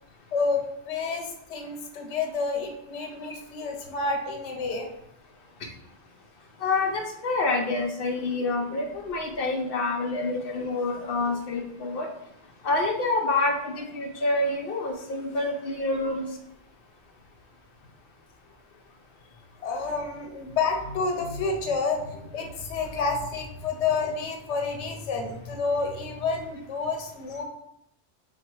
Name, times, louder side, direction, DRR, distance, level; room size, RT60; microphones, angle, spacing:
voice 1, 0.3-4.9 16.0-16.1 19.6-27.4, left 4 dB, 85° left, 3 dB, 0.9 m, -29 dB
voice 2, 6.4-12.3 12.6-16.4, left 2 dB, 60° left, 2 dB, 0.8 m, -27 dB
4.1 x 2.2 x 4.4 m, 0.77 s
omnidirectional pair, 1.2 m